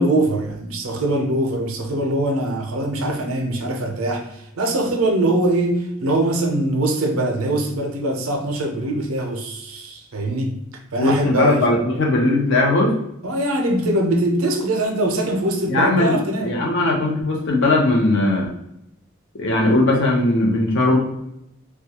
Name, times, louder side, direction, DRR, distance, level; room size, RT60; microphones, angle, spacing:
voice 1, 0.0-11.7 13.2-16.6, right 1 dB, 85° right, 3 dB, 0.5 m, -22 dB
voice 2, 11.0-12.9 15.7-18.5 19.4-21.0, left 2 dB, 60° left, 0 dB, 0.6 m, -18 dB
2.2 x 2.2 x 2.8 m, 0.79 s
head